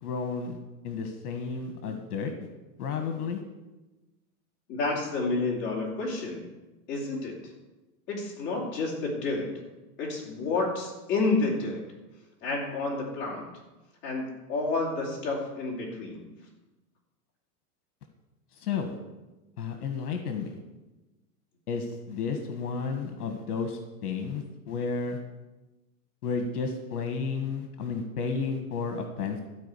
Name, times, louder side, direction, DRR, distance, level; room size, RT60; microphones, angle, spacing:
voice 1, 0.0-0.6 0.8-2.3 2.8-3.4 18.6-19.0 19.6-20.5 21.7-25.2 26.2-29.4, left 5 dB, 70° left, 6 dB, 1.6 m, -32 dB
voice 2, 4.7-6.5 6.9-7.4 8.1-9.5 10.0-11.8 12.4-13.4 14.0-14.2 14.5-16.2, left 3 dB, 25° left, -4 dB, 3.0 m, -29 dB
13.0 x 5.0 x 8.5 m, 1.1 s
supercardioid pair, 175°, 47 cm